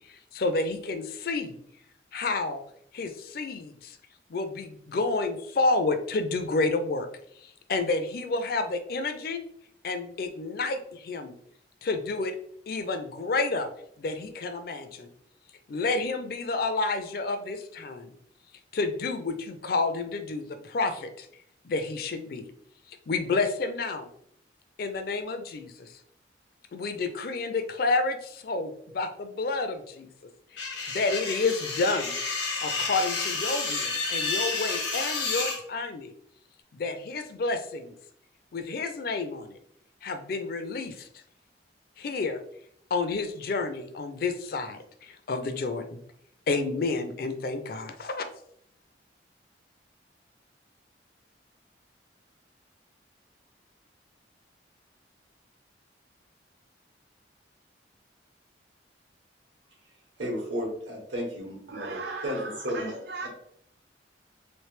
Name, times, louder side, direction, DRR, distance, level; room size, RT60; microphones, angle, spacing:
voice 1, 0.1-1.5 2.1-2.6 2.9-4.0 4.3-7.1 7.7-9.4 9.8-11.3 11.8-12.3 12.7-13.7 14.0-15.1 15.7-18.1 18.7-21.3 21.6-22.5 23.1-24.1 24.8-25.9 26.7-30.1 30.9-32.2 32.6-36.1 36.7-37.9 38.5-39.6 40.0-41.1 42.0-42.4 42.9-46.0 46.5-48.2, left 3 dB, 50° left, 8 dB, 0.4 m, -30 dB
sound 1, 30.6-35.6, left 4 dB, 85° left, 1.0 m, -30 dB
voice 2, 60.2-62.9, equal, 80° right, -1 dB, 1.4 m, -33 dB
voice 3, 61.7-63.3, right 4 dB, 60° right, 4 dB, 0.3 m, -38 dB
3.2 x 3.0 x 3.2 m, 0.68 s
head